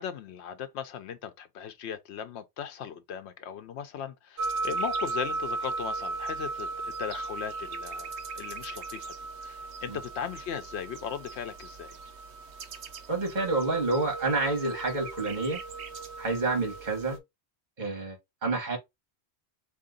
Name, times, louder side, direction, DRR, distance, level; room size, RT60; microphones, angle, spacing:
voice 1, 0.0-8.1 8.3-9.1 9.4-11.9, left 8 dB, 90° left, 0.9 m, -38 dB
sound 1, 4.4-17.2, right 3 dB, 90° right, 1.0 m, -36 dB
voice 2, 13.1-15.6 16.2-17.2 17.8-18.8, right 3 dB, 45° right, 1.5 m, -29 dB
3.7 x 2.8 x 3.8 m
omnidirectional pair, 1.1 m